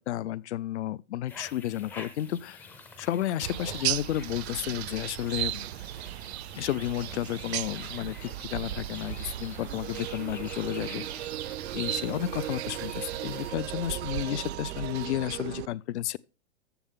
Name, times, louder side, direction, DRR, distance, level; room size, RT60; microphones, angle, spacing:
voice 1, 0.0-2.7 3.0-5.6 6.6-11.1 11.7-16.2, left 13 dB, 75° left, 0.7 m, -32 dB
sound 1, 1.3-13.5, left 4 dB, 5° left, 0.4 m, -48 dB
sound 2, 3.4-15.7, right 14 dB, 65° right, 0.5 m, -37 dB
sound 3, 9.6-15.7, right 14 dB, 85° right, 0.9 m, -39 dB
14.0 x 7.8 x 3.7 m
supercardioid pair, 170°, 35 cm